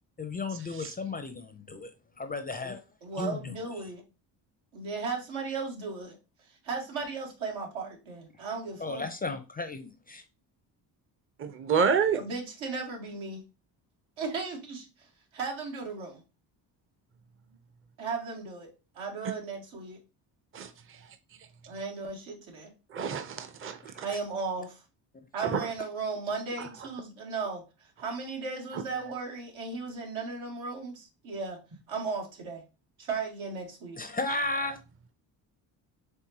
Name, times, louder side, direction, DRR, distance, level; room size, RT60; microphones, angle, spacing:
voice 1, 0.2-2.8 3.2-3.5 8.8-10.2 24.1-24.2 34.0-34.8, left 3 dB, 20° left, 0.5 m, -34 dB
voice 2, 3.0-4.0 4.7-6.2 6.6-9.0 12.1-13.4 14.2-15.1 15.3-16.2 18.0-18.7 18.9-20.0 21.7-22.7 24.0-24.8 25.3-27.6 28.0-31.6 31.9-32.6 33.0-34.0, right 4 dB, 75° right, 1.6 m, -36 dB
voice 3, 11.4-12.2 20.5-21.0 22.9-24.1 25.4-25.7 26.6-26.7 28.7-28.8, right 6 dB, 25° right, 0.6 m, -29 dB
4.6 x 3.3 x 2.8 m
supercardioid pair, 70°, 48 cm